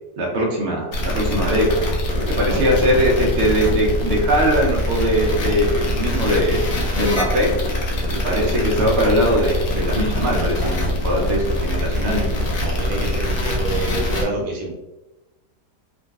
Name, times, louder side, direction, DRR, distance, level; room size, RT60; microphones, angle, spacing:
voice 1, 0.2-1.9 2.3-6.6 6.9-7.5 8.2-12.4, equal, 85° right, -1 dB, 0.5 m, -20 dB
sound 1, 0.9-14.2, left 1 dB, 65° left, 1.0 m, -23 dB
voice 2, 2.1-2.7 8.0-8.4 10.2-10.8 11.2-11.3 12.6-14.8, right 2 dB, 70° right, 0 dB, 1.0 m, -29 dB
3.6 x 2.3 x 2.3 m, 1.0 s
omnidirectional pair, 1.8 m